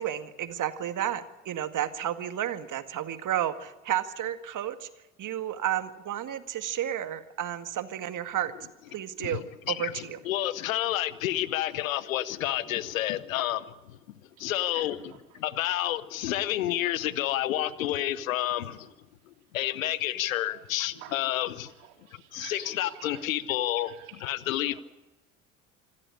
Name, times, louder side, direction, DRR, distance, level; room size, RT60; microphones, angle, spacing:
voice 1, 0.0-4.9 5.2-8.5 8.9-10.2, right 11 dB, 50° right, 2.0 m, -32 dB
voice 2, 9.2-14.0 14.4-15.0 15.3-18.9 19.5-21.7 22.3-23.9 24.2-24.8, left 13 dB, 85° left, 0.9 m, -30 dB
voice 3, 12.4-13.0 14.4-15.4 15.8-15.9 17.2-17.4 18.7-18.9 19.8-21.2 21.5-23.3 23.6-24.3 24.6-24.8, right 11 dB, 75° right, 4.1 m, -51 dB
26.5 x 13.0 x 9.9 m
hypercardioid pair, 60°, 40 cm